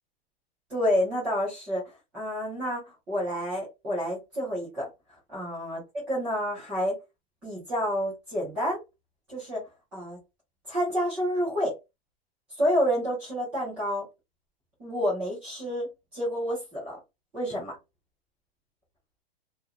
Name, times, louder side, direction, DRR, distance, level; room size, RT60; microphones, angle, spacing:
voice 1, 0.7-1.8 2.1-4.9 5.3-7.0 7.4-8.8 9.3-9.6 9.9-10.2 10.7-11.8 12.6-14.1 14.8-15.9 16.1-17.0 17.3-17.7, equal, 5° right, 0.4 m, -29 dB
2.4 x 2.0 x 2.7 m
supercardioid pair, 180°, 31 cm